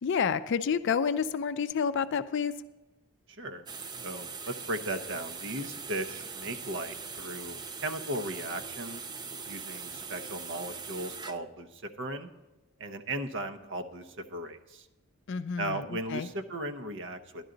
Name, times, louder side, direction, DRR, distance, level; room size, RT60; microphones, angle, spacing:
voice 1, 0.0-2.5 15.3-16.3, left 6 dB, 55° left, 12 dB, 0.4 m, -29 dB
sound 1, 3.7-11.4, right 5 dB, 20° right, 0.4 m, -41 dB
voice 2, 4.0-9.1 9.5-12.3 12.8-14.9 15.6-17.4, right 1 dB, 55° right, 8 dB, 0.8 m, -37 dB
12.0 x 10.5 x 3.9 m, 1.1 s
head